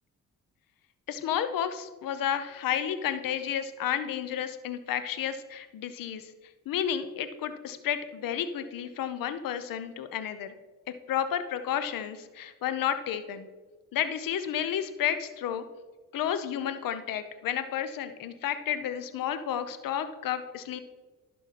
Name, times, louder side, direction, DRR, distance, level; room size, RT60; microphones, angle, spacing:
voice 1, 1.1-6.3 6.7-10.5 11.1-13.5 13.9-15.6 16.1-20.8, left 9 dB, 65° left, 11 dB, 0.8 m, -31 dB
11.0 x 5.7 x 4.2 m, 1.3 s
supercardioid pair, 55°, 36 cm